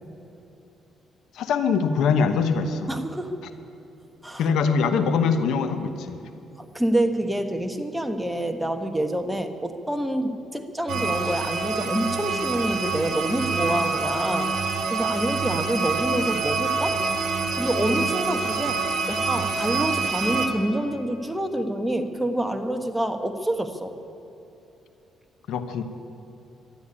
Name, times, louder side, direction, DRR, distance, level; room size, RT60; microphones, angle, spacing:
voice 1, 1.3-2.9 4.4-6.2 25.5-25.8, left 5 dB, 80° left, 9 dB, 1.0 m, -23 dB
voice 2, 2.9-3.4 4.2-4.5 6.6-17.0 17.5-18.8 19.1-23.9, right 1 dB, 5° right, 7 dB, 1.3 m, -27 dB
sound 1, 10.9-20.5, right 4 dB, 70° right, 2.4 m, -26 dB
12.5 x 11.5 x 9.9 m, 2.9 s
cardioid pair, 90°, 0 cm